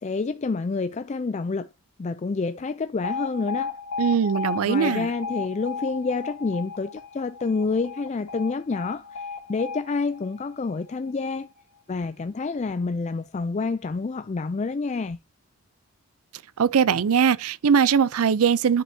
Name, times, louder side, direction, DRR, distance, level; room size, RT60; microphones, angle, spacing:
voice 1, 0.0-1.7 2.0-3.8 4.7-11.5 11.9-15.2, left 4 dB, 30° left, 0.3 m, -28 dB
Alarm, 3.0-11.1, left 5 dB, 75° left, 2.3 m, -34 dB
voice 2, 4.0-5.1 16.6-18.8, right 7 dB, 75° right, 0.4 m, -21 dB
11.0 x 5.4 x 2.7 m
head